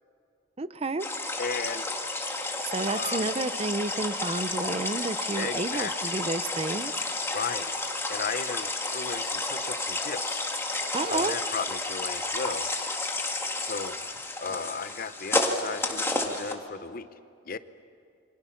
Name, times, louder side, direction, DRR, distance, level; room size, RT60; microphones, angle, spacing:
voice 1, 0.6-1.1 2.6-7.0 10.9-11.4, right 3 dB, 30° right, 14 dB, 0.6 m, -30 dB
sound 1, 1.0-16.5, left 2 dB, 15° left, 1.9 m, -31 dB
voice 2, 1.4-1.9 2.8-3.3 5.3-6.2 7.3-7.7 8.1-10.4 11.0-12.7 13.6-14.0 14.4-17.1 17.5-17.6, left 5 dB, 50° left, 13 dB, 0.8 m, -35 dB
29.0 x 25.0 x 5.8 m, 2.4 s
head